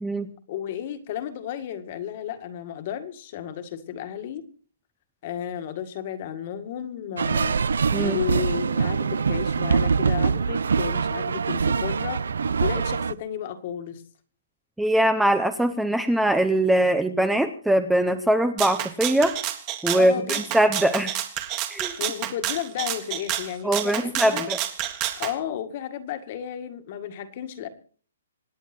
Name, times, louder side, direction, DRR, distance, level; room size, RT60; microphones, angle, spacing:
voice 1, 0.5-4.4 5.2-7.6 8.0-12.2 12.6-14.0 19.9-20.5 22.0-24.5 25.2-27.7, left 10 dB, 35° left, 9 dB, 1.8 m, -33 dB
sound 1, 7.2-13.1, right 5 dB, 85° right, 0.7 m, -24 dB
voice 2, 14.8-19.4 19.8-21.1 21.7-21.9 23.6-24.6, right 1 dB, ahead, 9 dB, 0.7 m, -22 dB
Rattle (instrument), 18.6-25.3, right 12 dB, 20° right, 1.7 m, -29 dB
26.5 x 10.0 x 4.4 m, 0.42 s
hypercardioid pair, 170°, 0 cm